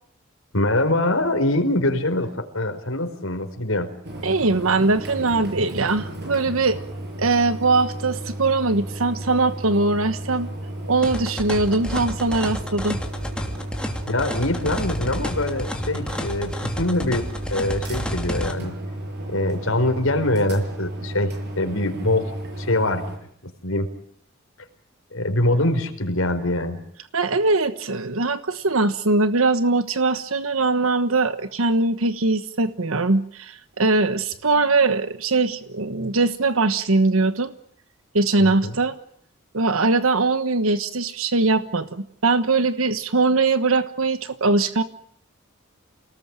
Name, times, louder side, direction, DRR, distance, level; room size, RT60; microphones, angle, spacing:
voice 1, 0.5-3.9 14.1-18.7 19.3-23.0 23.4-23.9 25.1-26.8 38.4-38.7, left 1 dB, 75° left, 7 dB, 4.8 m, -24 dB
sound 1, 4.0-23.2, right 1 dB, 55° right, 7.2 m, -33 dB
voice 2, 4.2-6.8 7.2-10.5 10.9-13.0 27.1-37.5 38.1-39.0 39.5-44.8, right 3 dB, 80° right, 11 dB, 1.3 m, -21 dB
sound 2, 11.0-18.5, equal, 5° left, 2.8 m, -31 dB
29.0 x 19.5 x 9.0 m, 0.68 s
head